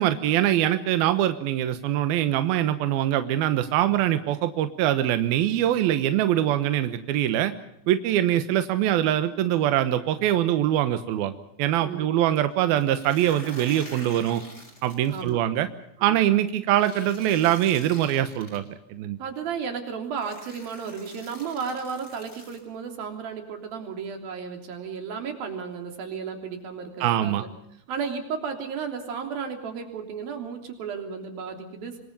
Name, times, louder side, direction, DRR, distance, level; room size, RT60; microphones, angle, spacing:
voice 1, 0.0-7.5 7.9-14.4 14.8-15.7 16.0-19.2 27.0-27.4, right 12 dB, 75° right, 10 dB, 2.2 m, -23 dB
sound 1, 12.8-15.3 16.8-18.6 19.6-19.7 20.2-22.6, left 1 dB, 15° left, 6.4 m, -46 dB
voice 2, 15.1-15.4 16.0-16.2 19.2-27.5 27.9-32.0, right 6 dB, 50° right, 5 dB, 4.7 m, -34 dB
26.5 x 23.0 x 5.4 m, 0.72 s
omnidirectional pair, 5.9 m